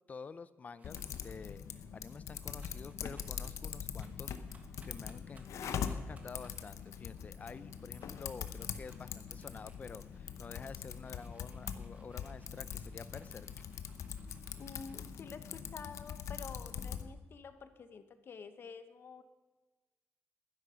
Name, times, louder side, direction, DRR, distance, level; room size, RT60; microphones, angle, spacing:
voice 1, 0.1-4.4 4.8-13.5, left 5 dB, 30° left, 16 dB, 0.4 m, -49 dB
Typing, 0.8-17.1, left 7 dB, 90° left, 0.8 m, -43 dB
sound 1, 0.8-1.5 2.1-15.0, right 3 dB, 30° right, 1.5 m, -66 dB
voice 2, 4.9-5.3 14.6-19.2, left 5 dB, 50° left, 10 dB, 0.9 m, -49 dB
12.0 x 10.0 x 5.7 m, 1.2 s
wide cardioid pair, 150°, 5 cm